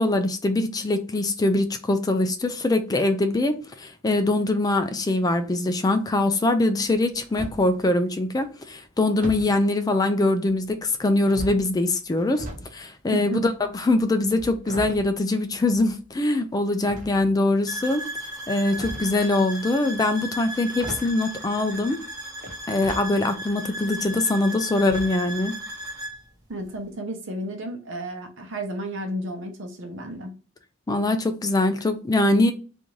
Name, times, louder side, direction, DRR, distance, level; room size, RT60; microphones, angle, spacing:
voice 1, 0.0-12.5 12.7-18.0 18.5-22.0 22.7-25.6 30.9-32.5, left 2 dB, 20° left, 0.3 m, -23 dB
sound 1, 7.1-7.7 9.2-9.6 10.4-10.9 11.2-12.7 13.0-16.0 16.8-17.5 18.5-19.2 20.3-20.4 20.7-21.2 22.4-23.1 23.6-23.7 24.8-25.4 25.6-25.8 26.1-26.2, equal, 40° right, 0.9 m, -38 dB
sound 2, 17.7-26.2, right 1 dB, 20° right, 0.8 m, -35 dB
voice 2, 26.5-30.3, right 1 dB, 65° right, 0.8 m, -32 dB
3.6 x 2.6 x 3.1 m
head